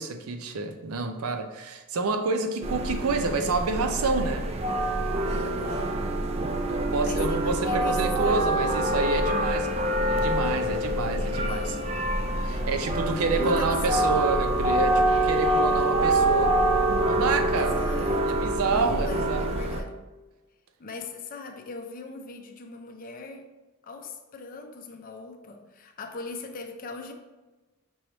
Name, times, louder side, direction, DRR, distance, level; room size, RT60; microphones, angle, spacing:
voice 1, 0.0-4.4 6.7-11.8 12.4-16.5 17.0-17.8 18.3-19.5, right 3 dB, 85° right, 6 dB, 0.5 m, -28 dB
sound 1, 2.6-19.8, right 1 dB, 30° right, 0.3 m, -25 dB
voice 2, 5.3-6.0 7.0-8.9 11.4-13.0 13.3-14.2 17.5-20.0 20.8-23.5 23.8-27.1, left 3 dB, 40° left, 4 dB, 0.5 m, -40 dB
5.4 x 3.1 x 2.9 m, 1.2 s
head